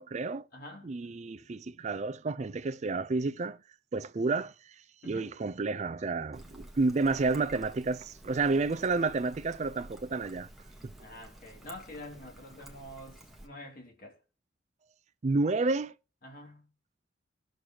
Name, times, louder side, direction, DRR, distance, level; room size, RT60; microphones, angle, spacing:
voice 1, 0.0-0.5 0.8-3.6 3.9-4.5 5.0-10.5 10.8-10.9 15.2-15.9, right 3 dB, 35° right, 0.4 m, -30 dB
voice 2, 0.5-0.9 5.0-5.3 11.0-14.2 16.2-16.7, left 1 dB, 50° left, 2.6 m, -47 dB
Trickle dribble, 6.3-13.5, right 1 dB, ahead, 1.2 m, -51 dB
19.5 x 6.5 x 2.9 m
head